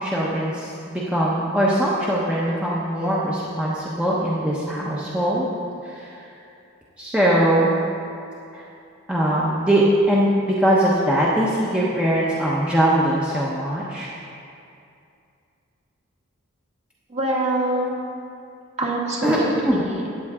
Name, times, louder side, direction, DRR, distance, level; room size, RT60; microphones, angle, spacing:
voice 1, 0.0-5.5 5.8-6.2 7.0-7.7 8.5-8.6 9.1-14.1 19.2-19.4 19.6-19.8, right 1 dB, 5° right, -7 dB, 1.0 m, -21 dB
voice 2, 17.1-18.0 18.8-20.0, right 1 dB, 30° right, -2 dB, 1.5 m, -24 dB
14.5 x 9.3 x 3.7 m, 2.6 s
head